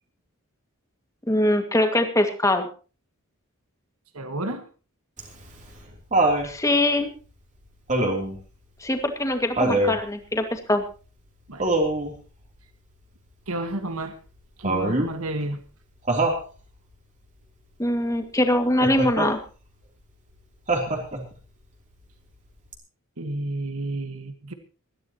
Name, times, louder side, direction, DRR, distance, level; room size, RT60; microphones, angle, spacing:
voice 1, 1.3-2.7 6.4-7.1 8.8-10.8 17.8-19.4, left 1 dB, 15° left, 6 dB, 2.1 m, -22 dB
voice 2, 4.1-4.6 11.5-11.7 13.5-14.2 14.6-15.6 20.9-21.0 23.2-24.5, right 2 dB, 75° right, 8 dB, 1.6 m, -31 dB
Laughter, 5.2-6.5 7.9-8.4 9.6-10.0 11.6-12.1 14.6-15.1 16.1-16.4 18.8-19.3 20.7-21.3 22.7-22.8, right 2 dB, 35° right, 3.4 m, -23 dB
21.5 x 14.0 x 3.0 m, 0.35 s
head